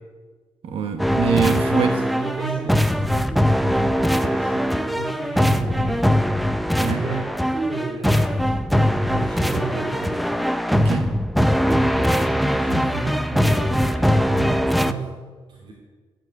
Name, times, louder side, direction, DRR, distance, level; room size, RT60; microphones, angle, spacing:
voice 1, 0.6-2.0 6.8-7.1 10.7-11.2, right 6 dB, 85° right, 6 dB, 1.2 m, -24 dB
sound 1, 1.0-14.9, equal, ahead, 0.5 m, -21 dB
voice 2, 1.7-6.1 6.8-10.2 11.6-15.2 15.5-15.7, right 4 dB, 60° right, -4 dB, 3.1 m, -32 dB
14.0 x 7.8 x 8.4 m, 1.4 s
wide cardioid pair, 125°, 9 cm